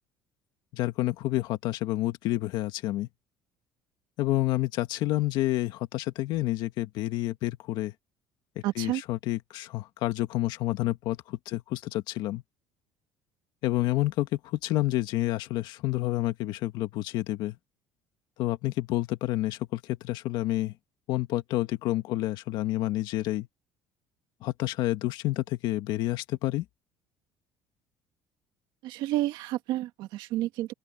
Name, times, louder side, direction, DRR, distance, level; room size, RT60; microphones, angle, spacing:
voice 1, 0.7-3.1 4.2-7.9 8.5-12.4 13.6-17.6 18.4-20.7 21.1-23.5 24.4-26.6, left 16 dB, 70° left, 1.7 m, -29 dB
voice 2, 8.6-9.0 28.8-30.7, right 15 dB, 70° right, 1.8 m, -30 dB
open air
cardioid pair, 155°, 8 cm